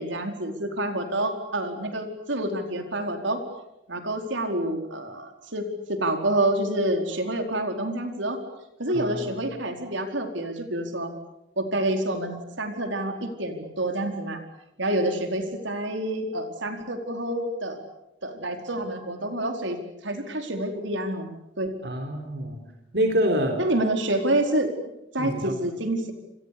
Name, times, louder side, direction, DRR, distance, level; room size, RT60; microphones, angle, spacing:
voice 1, 0.0-3.4 3.9-8.4 8.8-11.1 11.6-14.4 14.8-17.8 18.2-21.3 21.6-21.7 23.6-24.7 25.1-26.1, right 1 dB, 80° right, 5 dB, 4.6 m, -28 dB
voice 2, 8.9-9.4 21.8-22.6 22.9-23.6 25.2-25.6, equal, 60° right, 5 dB, 3.9 m, -26 dB
29.5 x 27.0 x 6.9 m, 0.86 s
head